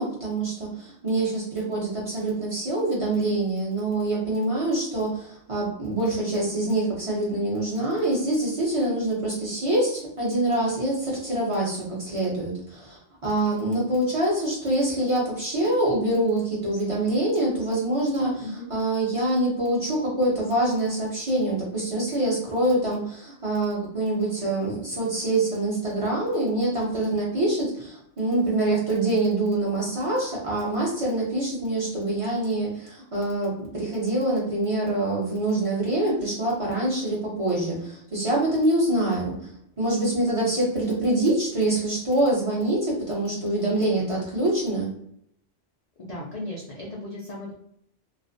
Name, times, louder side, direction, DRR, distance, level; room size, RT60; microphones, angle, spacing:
voice 1, 0.0-39.5 39.8-44.9, right 1 dB, 35° right, -6 dB, 0.6 m, -25 dB
voice 2, 46.0-47.5, left 1 dB, 60° left, -4 dB, 0.4 m, -36 dB
2.4 x 2.1 x 2.5 m, 0.72 s
omnidirectional pair, 1.2 m